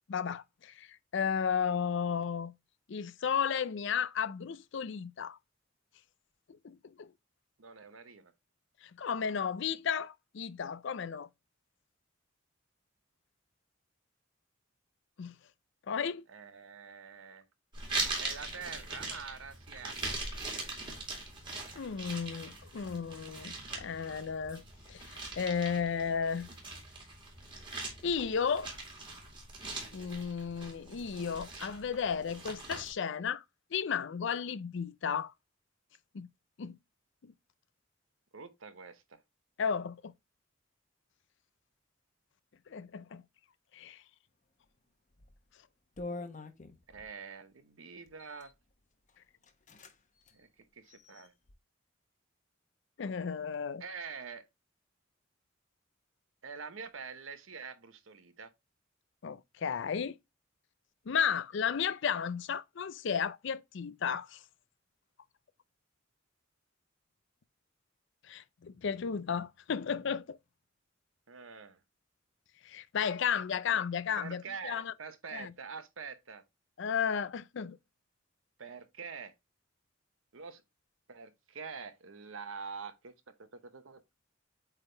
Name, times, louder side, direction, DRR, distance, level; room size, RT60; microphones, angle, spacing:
voice 1, 0.1-2.5 2.9-5.4 6.6-7.1 8.8-11.3 15.2-15.4 15.9-16.2 21.8-24.6 24.9-26.5 28.0-28.8 29.9-33.4 33.7-35.3 36.1-36.3 36.6-36.8 37.2-37.3 39.6-40.1 42.7-43.2 43.7-44.0 53.0-53.8 59.2-60.2 61.1-64.4 68.2-70.4 72.6-74.9 75.3-75.5 76.8-77.8, left 7 dB, 65° left, 0.5 m, -34 dB
voice 2, 7.6-8.3 16.3-17.4 18.2-20.7 38.3-39.2 46.9-48.5 50.3-50.5 50.8-51.3 53.8-54.4 56.4-58.5 71.3-71.8 73.7-73.8 74.2-76.4 78.6-79.3 80.3-80.6 81.1-84.0, right 5 dB, 85° right, 0.9 m, -46 dB
sound 1, 17.7-32.9, right 2 dB, 25° right, 2.4 m, -41 dB
sound 2, 45.1-45.4 46.0-47.1 48.1-48.5 49.1-49.2 49.4-49.9 50.2-50.3 50.8-51.5, left 2 dB, 40° left, 0.9 m, -45 dB
8.2 x 3.5 x 3.3 m
head